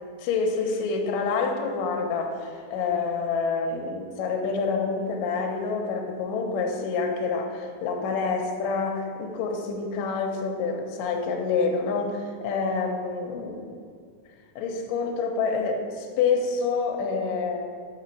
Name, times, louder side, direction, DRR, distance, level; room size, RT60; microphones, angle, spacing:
voice 1, 0.2-13.7 14.6-17.7, left 4 dB, 75° left, 2 dB, 1.7 m, -27 dB
5.3 x 4.9 x 4.5 m, 2.1 s
omnidirectional pair, 3.7 m